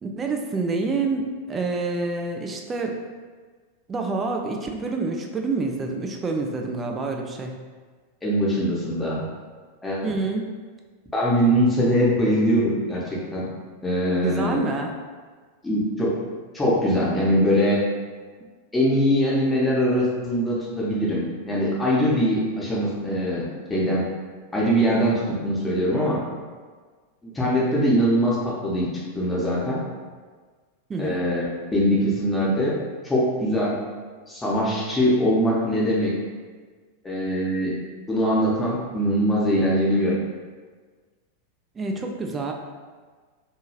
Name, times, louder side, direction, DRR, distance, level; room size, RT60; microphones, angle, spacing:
voice 1, 0.0-3.0 3.9-7.5 10.0-10.5 14.2-14.9 30.9-31.2 41.8-42.5, right 3 dB, 20° right, 2 dB, 0.3 m, -27 dB
voice 2, 8.2-9.2 9.8-10.1 11.1-13.5 13.8-14.6 15.6-16.1 16.5-17.8 18.7-24.0 24.5-26.2 27.2-28.9 29.1-29.8 31.0-31.5 31.7-32.8 33.0-33.8 34.3-36.1 37.0-37.7 38.1-40.2, equal, 10° left, -6 dB, 0.7 m, -22 dB
2.7 x 2.7 x 2.4 m, 1.5 s
figure-of-eight pair, 90°, 0 cm